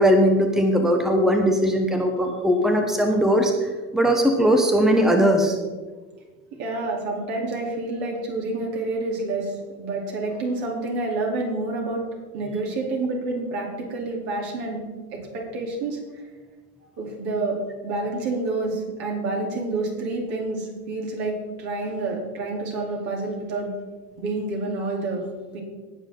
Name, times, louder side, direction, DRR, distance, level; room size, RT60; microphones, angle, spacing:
voice 1, 0.0-5.6, equal, ahead, 4 dB, 1.3 m, -19 dB
voice 2, 6.6-12.0 12.3-14.8 15.1-16.0 17.0-17.6 17.8-23.7 24.2-25.2 25.5-25.6, right 2 dB, 50° right, -1 dB, 3.8 m, -28 dB
19.0 x 6.5 x 3.9 m, 1.3 s
hypercardioid pair, 95°, 46 cm